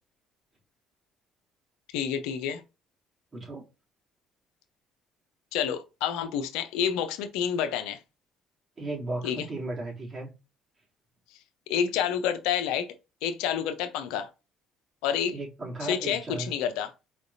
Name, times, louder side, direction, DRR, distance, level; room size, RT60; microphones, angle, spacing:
voice 1, 1.9-2.6 5.5-8.0 9.2-9.5 11.7-12.9 13.2-14.3 15.0-15.4 15.8-16.9, left 8 dB, 85° left, 0.7 m, -29 dB
voice 2, 3.3-3.7 8.8-10.3 15.3-16.5, right 2 dB, 30° right, 2.9 m, -35 dB
4.8 x 3.4 x 2.7 m
supercardioid pair, 75°, 0 cm